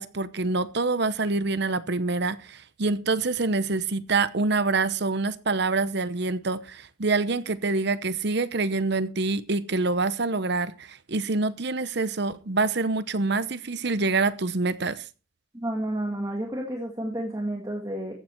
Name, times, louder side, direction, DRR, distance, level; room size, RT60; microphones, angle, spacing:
voice 1, 0.0-15.0, right 3 dB, 55° right, 0.8 m, -26 dB
voice 2, 15.6-18.1, right 1 dB, 15° right, 2.0 m, -30 dB
14.5 x 9.1 x 4.5 m
head